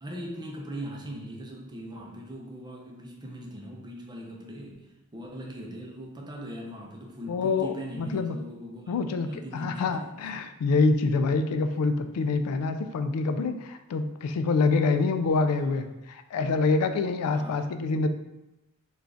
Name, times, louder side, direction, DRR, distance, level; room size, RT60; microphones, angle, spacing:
voice 1, 0.0-10.0 10.3-10.4 15.5-15.8 17.3-17.7, right 1 dB, 20° right, -1 dB, 0.5 m, -40 dB
voice 2, 7.3-8.4 8.9-18.1, left 3 dB, 90° left, 10 dB, 0.3 m, -26 dB
3.8 x 2.4 x 3.3 m, 0.94 s
head